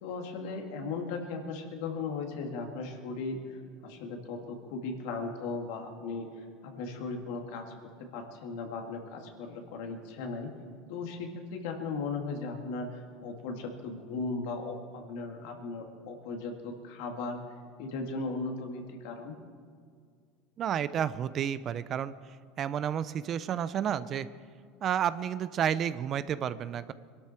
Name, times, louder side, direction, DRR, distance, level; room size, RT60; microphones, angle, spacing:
voice 1, 0.0-7.7 8.1-10.5 10.9-17.4 17.8-19.4, left 3 dB, 75° left, 3 dB, 2.3 m, -37 dB
voice 2, 20.6-22.1 22.6-24.3 24.8-26.9, right 9 dB, 45° right, 15 dB, 0.6 m, -31 dB
22.0 x 12.5 x 4.5 m, 2.1 s
supercardioid pair, 100°, 0 cm